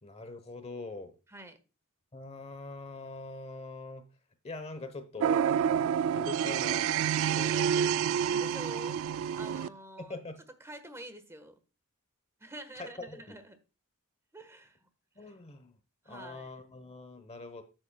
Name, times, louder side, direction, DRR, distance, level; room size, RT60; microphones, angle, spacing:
voice 1, 0.0-1.1 2.1-4.0 4.4-5.5 6.0-6.9 7.4-8.0 10.0-10.4 12.8-13.4 15.2-15.7 16.1-17.6, left 3 dB, 30° left, 1.0 m, -43 dB
sound 1, 5.2-9.7, right 8 dB, 65° right, 0.3 m, -28 dB
voice 2, 8.3-9.0 9.3-10.2 10.6-11.6 12.4-13.6 14.3-14.9 15.2-15.4 16.0-16.6, right 1 dB, 15° right, 1.3 m, -47 dB
11.5 x 7.8 x 2.3 m
head